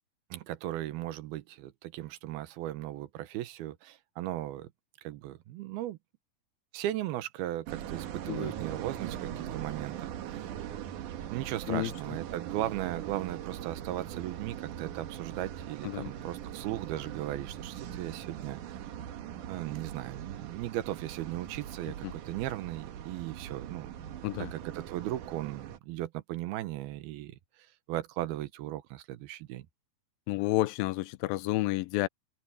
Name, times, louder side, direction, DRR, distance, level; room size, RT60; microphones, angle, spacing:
voice 1, 0.3-4.7 5.0-6.0 6.7-10.5 11.3-18.8 19.5-23.9 24.4-27.4 27.9-29.7, right 14 dB, 90° right, 2.9 m, -37 dB
sound 1, 7.7-25.8, right 10 dB, 65° right, 2.5 m, -41 dB
voice 2, 30.3-32.1, left 18 dB, 80° left, 2.5 m, -30 dB
omnidirectional pair, 4.3 m